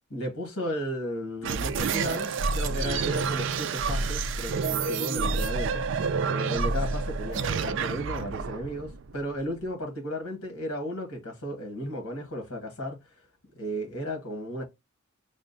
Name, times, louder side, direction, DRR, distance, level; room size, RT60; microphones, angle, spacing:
voice 1, 0.1-5.8 6.2-13.3 13.5-14.6, equal, 75° left, 1.5 m, -34 dB
sound 1, 1.4-9.6, right 4 dB, 55° right, 0.3 m, -29 dB
5.8 x 2.2 x 2.6 m
head